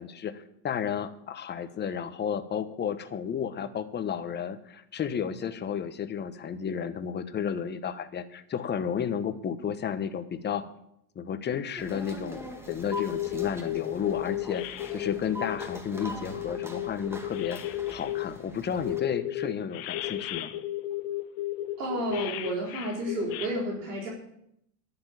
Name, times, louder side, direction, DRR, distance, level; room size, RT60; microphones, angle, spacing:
voice 1, 0.0-10.6 11.1-14.6 14.9-20.5, left 7 dB, 20° left, 10 dB, 1.1 m, -32 dB
sound 1, 11.8-19.0, equal, 5° right, 1.7 m, -43 dB
sound 2, 12.7-18.3 18.8-23.5, left 14 dB, 45° left, 1.1 m, -33 dB
voice 2, 21.8-24.1, right 1 dB, 65° right, -2 dB, 4.1 m, -31 dB
11.5 x 7.2 x 8.6 m, 0.75 s
hypercardioid pair, 115°, 50 cm